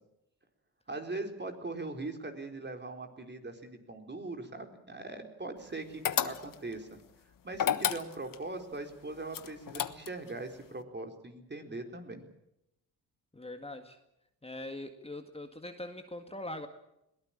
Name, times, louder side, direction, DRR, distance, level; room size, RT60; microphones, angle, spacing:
voice 1, 0.9-6.9 7.4-12.2, right 2 dB, 30° right, 5 dB, 4.0 m, -41 dB
sound 1, 6.0-6.7 7.5-8.4 9.3-10.3, left 9 dB, 60° left, 1.3 m, -31 dB
voice 2, 13.3-14.0 14.4-16.7, left 1 dB, 15° left, 6 dB, 1.9 m, -42 dB
21.5 x 17.5 x 8.7 m, 0.83 s
cardioid pair, 70°, 37 cm